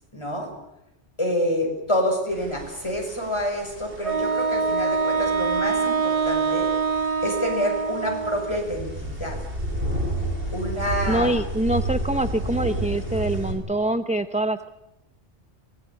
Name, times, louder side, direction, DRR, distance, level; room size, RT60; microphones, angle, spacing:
voice 1, 0.1-0.5 1.2-6.7 7.2-9.4 10.5-11.3, equal, 25° left, 2 dB, 6.2 m, -27 dB
sound 1, 2.3-13.5, right 1 dB, 55° right, 5.3 m, -32 dB
Wind instrument woodwind instrument, 4.0-8.7, right 5 dB, 35° right, 0.9 m, -24 dB
voice 2, 11.1-14.7, right 1 dB, 10° right, 9 dB, 0.7 m, -25 dB
24.0 x 19.0 x 8.6 m, 0.87 s
omnidirectional pair, 1.1 m